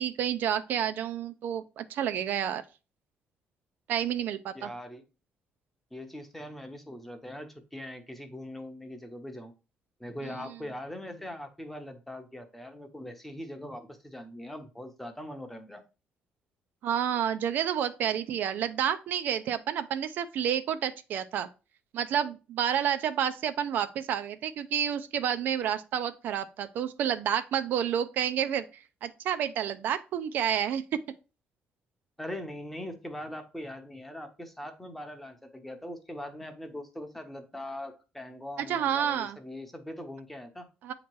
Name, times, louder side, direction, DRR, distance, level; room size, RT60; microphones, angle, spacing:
voice 1, 0.0-2.6 3.9-4.7 10.2-10.5 16.8-21.5 21.9-28.6 29.0-31.0 38.6-39.4 40.8-40.9, right 9 dB, 60° right, 0.4 m, -29 dB
voice 2, 4.5-5.0 5.9-9.5 10.0-15.8 32.2-40.7, left 1 dB, 5° left, 0.8 m, -41 dB
8.3 x 2.9 x 4.5 m
cardioid pair, 170°, 4 cm